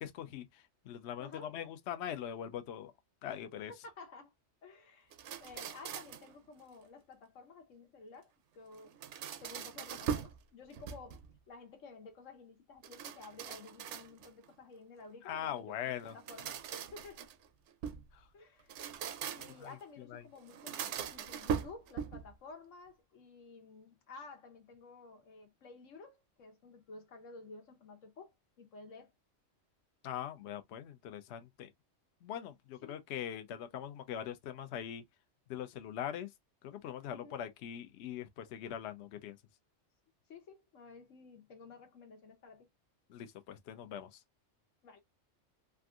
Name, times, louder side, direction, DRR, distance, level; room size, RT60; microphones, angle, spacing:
voice 1, 0.0-2.9 3.2-3.7 15.3-16.1 18.1-18.2 19.6-19.7 20.1-20.2 30.0-31.7 32.2-35.0 35.5-36.3 36.6-39.4 43.1-44.2, left 10 dB, 70° left, 0.8 m, -42 dB
voice 2, 1.2-1.5 3.8-4.3 4.6-5.1 5.4-8.9 9.4-11.2 11.5-16.6 16.9-17.2 18.3-18.8 19.3-29.1 32.8-33.0 37.1-37.4 40.3-42.7 44.8-45.0, left 4 dB, 90° left, 1.3 m, -53 dB
sound 1, 5.1-6.3 8.7-10.4 10.7-11.4 12.8-14.4 16.0-18.1 18.6-19.7 20.5-22.3, right 8 dB, 70° right, 0.8 m, -41 dB
3.5 x 2.5 x 2.3 m
omnidirectional pair, 1.3 m